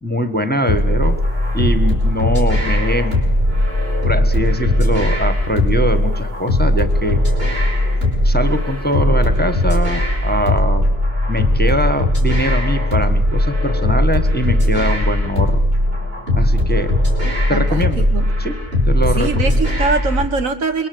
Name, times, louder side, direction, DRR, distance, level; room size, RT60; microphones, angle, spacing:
voice 1, 0.0-1.2 1.5-3.2 4.0-7.2 8.2-10.8 11.3-15.6 16.3-16.9 17.5-18.0 18.4-18.5 18.9-19.6, equal, 10° left, 7 dB, 1.1 m, -22 dB
sound 1, 0.7-20.3, left 1 dB, 45° right, 5.6 m, -18 dB
voice 2, 17.2-18.3 19.2-20.9, right 4 dB, 85° right, 8 dB, 1.9 m, -22 dB
27.0 x 22.0 x 7.7 m, 1.0 s
omnidirectional pair, 1.4 m